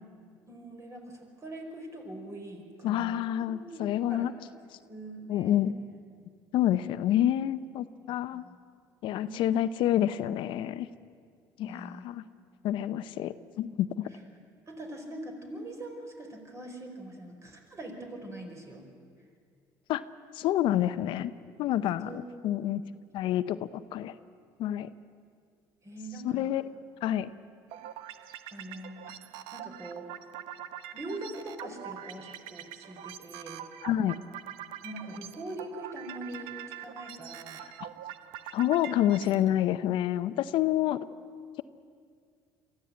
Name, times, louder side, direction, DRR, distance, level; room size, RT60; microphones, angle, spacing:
voice 1, 0.5-4.3 4.9-5.6 8.4-8.6 9.2-9.5 11.6-12.1 14.7-18.9 22.0-22.2 25.8-26.5 28.5-30.1 30.9-33.6 34.8-37.6, right 1 dB, 35° right, 3 dB, 4.9 m, -43 dB
voice 2, 2.8-4.3 5.3-5.7 6.5-8.5 9.0-10.9 11.6-12.2 12.6-14.1 19.9-20.0 20.3-21.3 21.6-22.1 22.4-22.8 23.1-24.1 24.6-24.9 26.2-26.7 27.0-27.3 33.8-34.2 38.5-41.0, left 12 dB, 70° left, 13 dB, 0.7 m, -28 dB
sound 1, 27.7-39.5, right 11 dB, 80° right, 0.9 m, -44 dB
23.0 x 14.5 x 8.7 m, 2.1 s
supercardioid pair, 80°, 9 cm